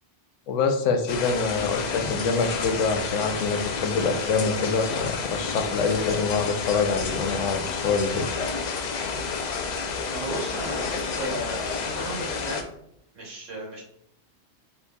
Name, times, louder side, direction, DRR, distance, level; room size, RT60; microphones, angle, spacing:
voice 1, 0.5-8.4, left 4 dB, 85° left, 5 dB, 1.0 m, -25 dB
sound 1, 1.1-12.6, left 5 dB, 65° left, 0.4 m, -30 dB
voice 2, 10.1-12.6 13.1-13.8, right 1 dB, 80° right, -3 dB, 1.5 m, -34 dB
4.4 x 3.9 x 2.3 m, 0.73 s
omnidirectional pair, 1.3 m